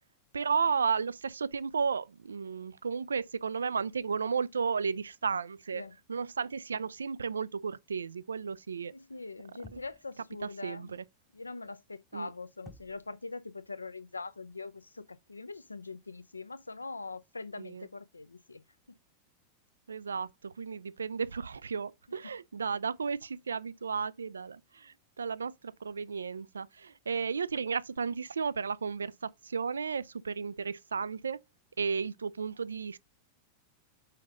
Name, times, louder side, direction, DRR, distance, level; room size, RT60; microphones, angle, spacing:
voice 1, 0.3-5.8 6.1-8.9 9.7-9.8 10.6-11.0 12.1-12.3 17.6-17.9 19.9-31.4 31.8-33.0, right 5 dB, 70° right, 0.3 m, -33 dB
voice 2, 8.9-10.9 11.3-18.6, left 3 dB, 80° left, 0.5 m, -43 dB
sound 1, 9.6-10.1 12.7-13.2, equal, ahead, 0.8 m, -52 dB
5.1 x 4.1 x 5.1 m
figure-of-eight pair, 90°, 0 cm